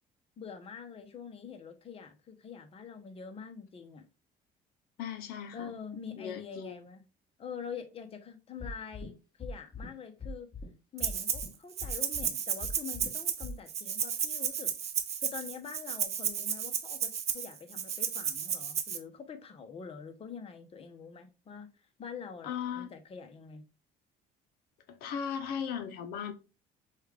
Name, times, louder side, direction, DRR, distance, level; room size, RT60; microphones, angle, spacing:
voice 1, 0.4-4.1 5.5-7.0 7.4-10.5 10.9-14.7 15.2-21.7 22.0-23.6, left 6 dB, 40° left, 0.9 m, -45 dB
voice 2, 5.0-5.8 6.0-6.8 22.4-22.9 24.9-26.3, left 8 dB, 75° left, 0.7 m, -37 dB
sound 1, 8.6-9.1 9.4-9.9 10.2-10.7 11.0-11.5 11.8-12.3 12.6-13.1 13.4-13.5, left 3 dB, 20° left, 1.7 m, -40 dB
Rattle (instrument), 11.0-11.5 11.8-19.0, right 8 dB, 40° right, 0.6 m, -33 dB
5.3 x 2.4 x 3.3 m
cardioid pair, 100°, 16 cm